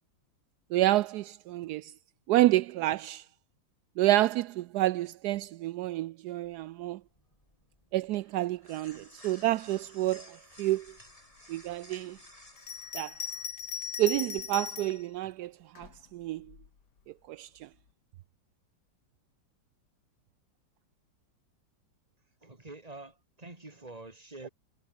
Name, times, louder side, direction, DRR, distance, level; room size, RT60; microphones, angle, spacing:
voice 1, 0.7-1.9 2.3-3.2 4.0-7.0 7.9-10.2 10.6-10.8 11.5-12.2 12.9-13.1 14.0-15.5 15.8-16.4 17.3-17.5, right 16 dB, 75° right, 0.9 m, -28 dB
sound 1, 6.4-14.9, left 1 dB, 15° left, 5.3 m, -56 dB
Bell, 12.6-15.0 15.8-16.7, left 6 dB, 60° left, 2.4 m, -38 dB
voice 2, 22.4-24.5, right 2 dB, 20° right, 2.8 m, -46 dB
omnidirectional pair, 2.2 m